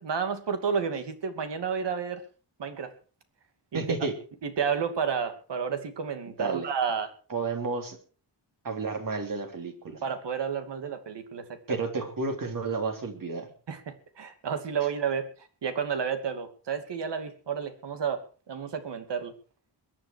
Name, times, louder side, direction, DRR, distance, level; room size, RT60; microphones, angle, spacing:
voice 1, 0.0-2.2 2.6-2.9 3.7-4.1 4.4-7.1 10.0-11.9 13.7-18.2 18.5-19.3, right 6 dB, 80° right, 8 dB, 2.7 m, -31 dB
voice 2, 3.7-4.1 6.4-6.7 7.3-8.0 8.6-10.0 11.7-13.5, right 4 dB, 50° right, 4 dB, 3.5 m, -31 dB
22.0 x 10.0 x 4.7 m, 0.37 s
wide cardioid pair, 150°, 41 cm